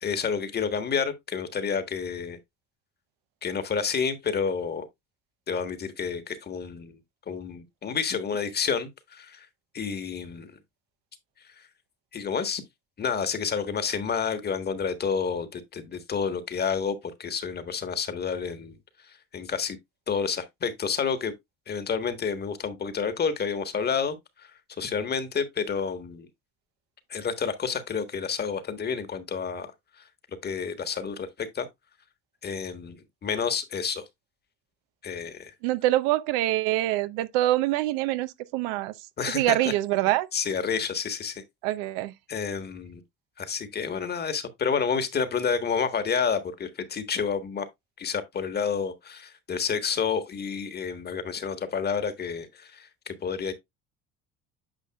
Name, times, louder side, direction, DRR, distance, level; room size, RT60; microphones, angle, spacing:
voice 1, 0.0-2.4 3.4-4.9 5.5-7.0 7.3-9.5 9.7-10.6 11.6-11.7 12.1-12.6 13.0-18.8 19.0-19.8 20.1-21.3 21.7-24.5 24.8-26.3 27.1-29.7 30.0-30.1 30.4-31.7 32.4-34.0 35.0-35.5 39.2-39.6 40.3-41.4 42.3-43.0 43.4-47.7 48.0-53.5, left 6 dB, 30° left, 1.4 m, -29 dB
voice 2, 35.6-38.9 39.2-40.3 41.6-42.1, right 15 dB, 90° right, 0.8 m, -25 dB
9.0 x 5.7 x 2.3 m
cardioid pair, 110°, 31 cm